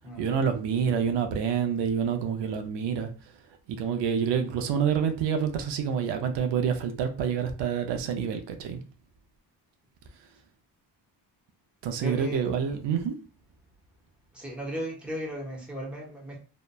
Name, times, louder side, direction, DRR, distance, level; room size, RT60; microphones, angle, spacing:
voice 1, 0.2-3.1 3.7-8.8 11.8-13.2, right 7 dB, 85° right, 0.5 m, -27 dB
voice 2, 12.0-12.5 14.3-16.4, equal, 5° right, 0.9 m, -36 dB
2.8 x 2.1 x 2.2 m
cardioid pair, 125°, 42 cm